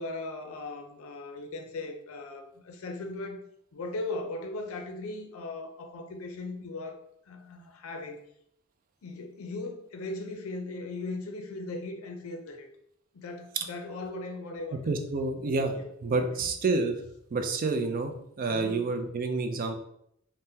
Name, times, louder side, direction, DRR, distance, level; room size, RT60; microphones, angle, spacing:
voice 1, 0.0-3.4 3.7-7.0 7.3-8.2 9.0-12.7 13.1-14.9 15.3-15.4 15.7-15.9 16.2-16.5 18.5-18.8, left 2 dB, 85° left, 5 dB, 0.5 m, -38 dB
voice 2, 14.9-15.8 16.0-17.0 17.3-19.8, right 3 dB, 40° right, 5 dB, 0.3 m, -28 dB
3.4 x 2.1 x 2.7 m, 0.72 s
head